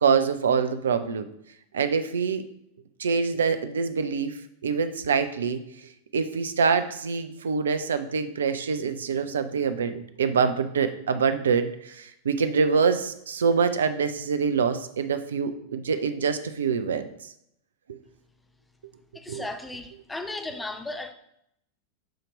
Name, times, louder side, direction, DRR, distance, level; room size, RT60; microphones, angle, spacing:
voice 1, 0.0-1.3 1.7-2.4 3.0-4.4 4.6-5.6 6.1-17.1 17.9-18.0 19.3-19.4, right 5 dB, 65° right, 10 dB, 0.5 m, -25 dB
voice 2, 19.1-21.1, left 2 dB, 10° left, 6 dB, 0.7 m, -35 dB
7.7 x 2.9 x 5.0 m, 0.75 s
figure-of-eight pair, 90°, 0 cm